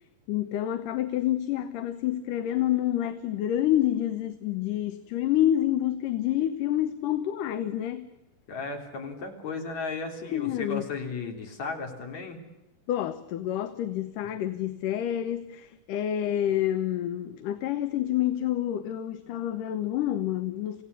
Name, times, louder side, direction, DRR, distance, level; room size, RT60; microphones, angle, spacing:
voice 1, 0.3-8.1 10.3-10.8 12.9-20.8, left 12 dB, 75° left, 9 dB, 2.5 m, -28 dB
voice 2, 8.5-12.4, left 4 dB, 55° left, 2 dB, 4.6 m, -35 dB
28.0 x 17.0 x 8.2 m, 0.96 s
omnidirectional pair, 3.8 m